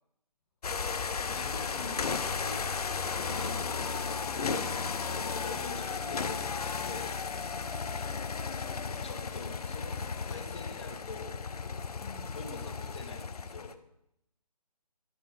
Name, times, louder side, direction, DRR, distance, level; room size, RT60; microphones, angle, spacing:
sound 1, 0.6-13.7, left 5 dB, 65° left, 0.7 m, -34 dB
voice 1, 1.3-2.7 3.4-4.7 5.2-7.2 8.9-11.4 12.3-13.8, left 4 dB, 45° left, 5 dB, 1.4 m, -44 dB
voice 2, 3.2-3.6 4.5-5.6 6.8-7.0 7.5-7.8 12.0-12.4, left 3 dB, 25° left, -2 dB, 1.0 m, -47 dB
10.5 x 6.0 x 5.1 m, 0.79 s
figure-of-eight pair, 160°, 21 cm